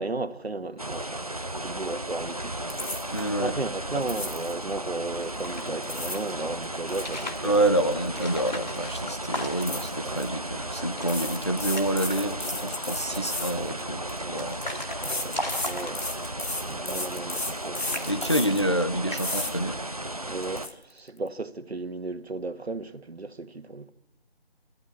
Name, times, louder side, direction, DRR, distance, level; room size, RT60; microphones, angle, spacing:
voice 1, 0.0-1.3 1.6-2.6 3.4-7.7 10.1-10.2 14.2-14.5 15.0-16.0 16.7-18.3 20.2-23.9, right 3 dB, 85° right, 1.6 m, -35 dB
sound 1, 0.8-20.7, right 1 dB, 35° right, 0.7 m, -35 dB
sound 2, 2.7-3.3 4.0-4.6 5.6-6.3 6.6-8.5 8.8-9.0 9.6-10.3 11.0-14.2 15.0-18.7 19.2-19.5 20.0-20.1 20.4-20.7, left 2 dB, 85° left, 3.3 m, -34 dB
voice 2, 3.1-3.6 7.4-14.7 18.1-19.8, right 1 dB, 30° left, 0.8 m, -27 dB
sound 3, 5.1-6.4 6.9-7.5 8.1-9.9 10.3-10.4 10.7-11.2 11.5-12.2 12.5-13.0 13.7-16.4 17.1-17.5 17.8-18.8 19.1-19.5, left 1 dB, 45° left, 2.2 m, -38 dB
28.5 x 13.5 x 9.7 m
figure-of-eight pair, 175°, 31 cm